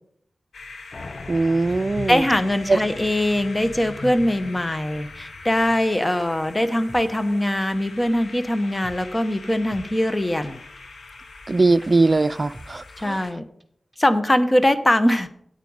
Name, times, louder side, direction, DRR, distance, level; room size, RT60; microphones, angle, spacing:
sound 1, 0.5-13.3, left 3 dB, 85° left, 1.2 m, -43 dB
sound 2, 0.9-6.2, left 3 dB, 55° left, 0.9 m, -39 dB
voice 1, 1.3-2.2 2.7-2.8 11.5-13.2, right 3 dB, 45° right, 0.3 m, -20 dB
voice 2, 2.1-10.6 13.0-13.4 14.0-15.3, left 1 dB, 25° left, 1.1 m, -22 dB
sound 3, 6.1-6.3 6.9-7.1 7.6-7.7 8.8-9.1 9.7-10.8 11.1-11.2 11.5-11.6 11.8-11.9 12.2-12.3 12.5-12.9 13.2-13.3 13.6-13.7 13.9-14.0, right 1 dB, 15° right, 1.5 m, -44 dB
9.2 x 9.2 x 4.9 m
cardioid pair, 45°, 0 cm